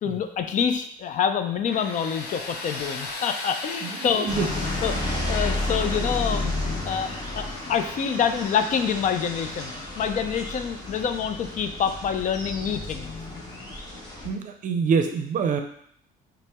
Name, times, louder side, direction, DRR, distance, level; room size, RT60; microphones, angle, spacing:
voice 1, 0.0-4.3 4.8-5.0 5.3-6.5 6.9-13.1, left 7 dB, 50° left, 8 dB, 0.4 m, -26 dB
Tools, 1.7-10.4, left 2 dB, 65° left, 0.8 m, -39 dB
voice 2, 3.8-4.5 14.2-15.6, right 5 dB, 50° right, 5 dB, 0.5 m, -25 dB
sound 1, 4.3-14.3, left 2 dB, 25° left, 1.1 m, -31 dB
5.3 x 2.1 x 3.4 m, 0.66 s
cardioid pair, 110°, 17 cm